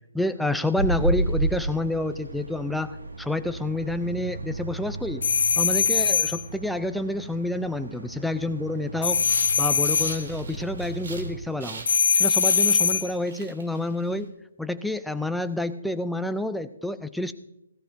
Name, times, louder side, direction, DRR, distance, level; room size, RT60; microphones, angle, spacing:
voice 1, 0.1-5.2 5.6-9.2 9.6-11.9 12.1-14.3 14.6-17.3, left 1 dB, ahead, 10 dB, 0.5 m, -28 dB
sound 1, 0.7-11.4, right 2 dB, 90° right, 1.9 m, -33 dB
sound 2, 5.2-6.4 9.0-10.2 11.9-13.1, left 6 dB, 65° left, 0.9 m, -22 dB
sound 3, 9.1-11.3 11.6-14.2, right 3 dB, 60° right, 2.6 m, -41 dB
16.5 x 16.0 x 2.7 m, 0.87 s
hypercardioid pair, 150°, 0 cm